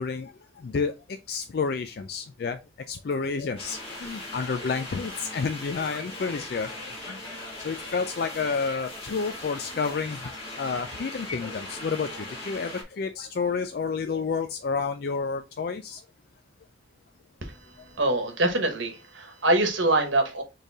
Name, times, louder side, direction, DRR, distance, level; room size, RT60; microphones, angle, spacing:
voice 1, 0.0-2.6 2.9-10.3 10.6-16.0 17.8-17.9, left 5 dB, 50° left, 0.3 m, -30 dB
sound 1, 3.6-12.8, left 2 dB, 30° left, 1.6 m, -39 dB
voice 2, 18.0-20.4, right 2 dB, 75° right, 1.2 m, -24 dB
4.4 x 3.3 x 3.4 m
head